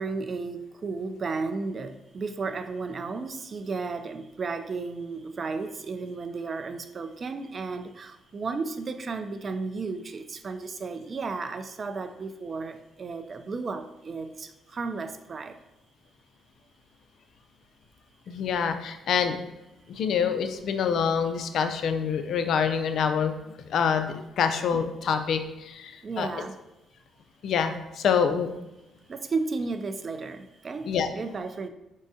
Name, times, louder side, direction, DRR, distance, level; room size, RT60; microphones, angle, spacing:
voice 1, 0.0-15.6 26.0-26.5 29.1-31.7, right 4 dB, 40° right, 9 dB, 0.4 m, -33 dB
voice 2, 18.3-19.4 19.9-23.3 23.7-26.3 27.4-28.5 30.9-31.1, left 7 dB, 70° left, 8 dB, 0.4 m, -26 dB
5.1 x 3.6 x 2.6 m, 0.98 s
cardioid pair, 90°, 0 cm